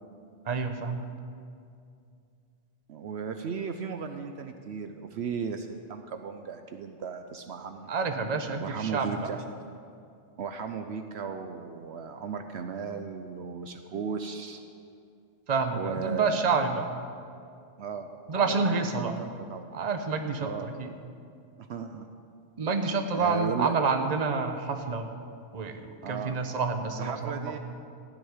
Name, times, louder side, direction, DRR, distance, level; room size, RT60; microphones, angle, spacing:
voice 1, 0.4-1.1 7.9-9.3 15.5-16.9 18.3-19.2 19.7-20.9 22.6-25.1 25.5-25.8 26.1-27.5, right 4 dB, 40° right, 6 dB, 1.0 m, -28 dB
voice 2, 2.9-7.9 8.6-9.4 10.4-14.6 15.7-16.6 17.8-18.7 19.0-19.7 20.4-20.7 21.6-22.1 23.2-23.7 26.0-26.4 27.0-27.6, right 6 dB, 70° right, 7 dB, 0.9 m, -36 dB
14.0 x 6.4 x 9.6 m, 2.4 s
omnidirectional pair, 1.2 m